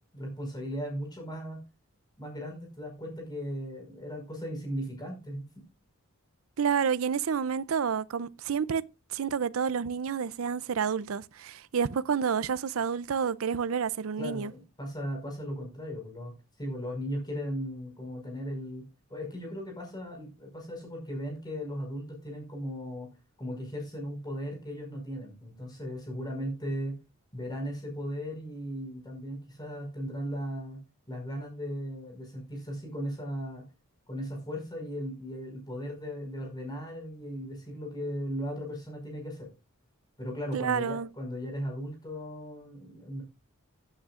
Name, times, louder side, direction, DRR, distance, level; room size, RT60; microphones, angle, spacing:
voice 1, 0.1-1.6 2.2-5.6 14.2-16.3 16.6-18.8 19.1-23.1 23.4-27.0 27.3-30.8 31.1-33.7 34.1-39.5 40.2-43.2, equal, 20° left, 5.3 m, -37 dB
voice 2, 6.6-8.8 9.1-14.5 40.5-41.1, right 6 dB, 65° right, 0.5 m, -29 dB
15.5 x 8.9 x 2.5 m
head